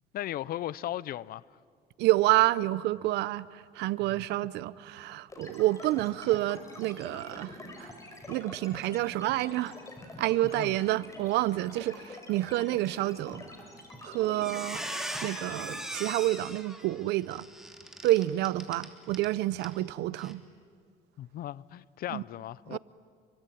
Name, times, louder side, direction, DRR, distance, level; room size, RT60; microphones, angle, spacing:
voice 1, 0.1-1.4 4.1-4.2 10.4-10.8 21.2-22.8, left 13 dB, 60° left, 0.6 m, -37 dB
voice 2, 2.0-7.9 8.3-9.7 10.2-13.4 14.0-14.8 15.2-17.5 18.0-20.4 22.1-22.2 22.7-22.8, right 16 dB, 85° right, 0.7 m, -28 dB
sound 1, 5.3-15.8, left 2 dB, 20° left, 5.4 m, -46 dB
Squeak, 13.8-14.0 14.3-19.3 19.6-19.8 20.2-20.3, right 1 dB, 5° right, 3.1 m, -39 dB
28.0 x 23.5 x 9.1 m
cardioid pair, 110°, 17 cm